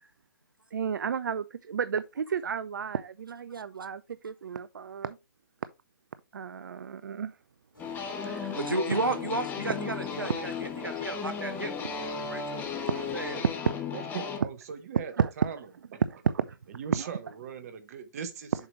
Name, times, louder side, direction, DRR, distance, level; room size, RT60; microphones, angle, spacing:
voice 1, 0.7-5.2 6.3-7.4 8.2-9.0 10.3-10.4 13.4-13.6 15.2-15.3 16.2-16.6 16.9-17.1, right 7 dB, 65° right, 0.4 m, -32 dB
sound 1, 7.7-13.3, left 1 dB, 85° left, 2.4 m, -52 dB
sound 2, 7.8-14.4, left 6 dB, 15° left, 1.3 m, -35 dB
voice 2, 8.6-13.5, right 2 dB, 90° right, 0.8 m, -34 dB
voice 3, 13.9-15.6 15.9-16.0 16.7-18.5, right 7 dB, 45° right, 1.2 m, -39 dB
7.2 x 4.9 x 3.0 m
figure-of-eight pair, 125°, 11 cm